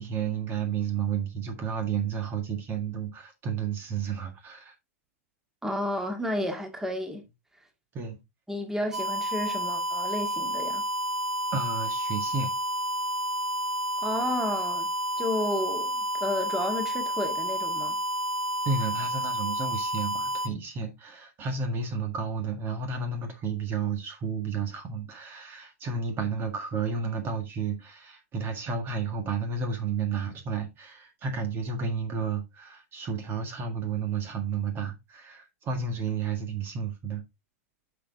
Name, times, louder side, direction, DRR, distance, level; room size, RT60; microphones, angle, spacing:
voice 1, 0.0-4.7 7.9-8.2 11.5-12.5 18.6-37.2, right 5 dB, 30° right, 1.7 m, -32 dB
voice 2, 5.6-7.2 8.5-10.8 14.0-14.9 15.2-18.0, left 1 dB, 5° right, 1.9 m, -31 dB
sound 1, 8.9-20.5, right 1 dB, 80° right, 1.6 m, -30 dB
10.0 x 6.0 x 2.7 m
figure-of-eight pair, 100°, 8 cm